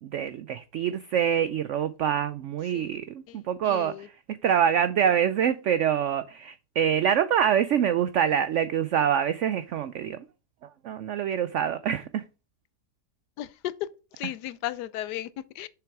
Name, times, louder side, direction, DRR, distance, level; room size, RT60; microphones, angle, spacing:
voice 1, 0.0-4.1 4.4-10.2 10.8-12.2, right 9 dB, 80° right, 0.6 m, -25 dB
voice 2, 3.6-4.1 13.4-13.9 14.2-15.7, left 13 dB, 80° left, 1.2 m, -35 dB
7.0 x 5.9 x 4.6 m
omnidirectional pair, 1.8 m